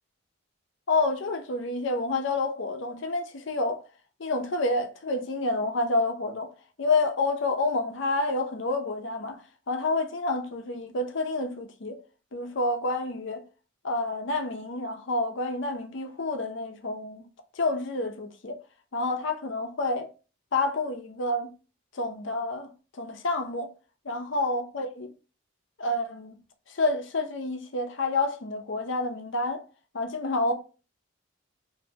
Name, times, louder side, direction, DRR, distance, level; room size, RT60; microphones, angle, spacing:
voice 1, 0.9-3.8 4.2-6.5 6.8-12.0 12.3-13.4 13.8-17.3 17.6-18.6 18.9-20.1 20.5-21.5 21.9-22.7 23.0-23.7 24.0-25.1 25.8-26.4 26.7-29.6 29.9-30.5, left 2 dB, 60° left, 0.6 m, -28 dB
3.2 x 2.6 x 2.8 m
head